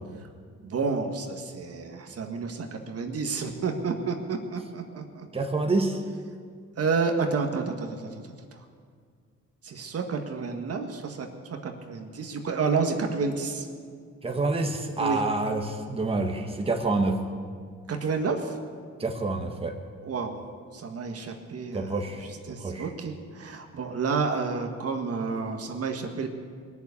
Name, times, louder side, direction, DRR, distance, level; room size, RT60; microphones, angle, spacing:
voice 1, 0.6-5.3 6.8-8.2 9.6-11.3 11.6-13.7 15.0-15.2 17.9-18.5 20.0-20.4 20.7-26.3, right 4 dB, 50° right, 4 dB, 1.6 m, -30 dB
voice 2, 5.3-6.0 14.2-17.2 19.0-19.7 21.7-22.2 22.5-22.9, right 3 dB, 20° right, 3 dB, 1.5 m, -27 dB
20.5 x 7.1 x 8.3 m, 2.1 s
cardioid pair, 90°, 30 cm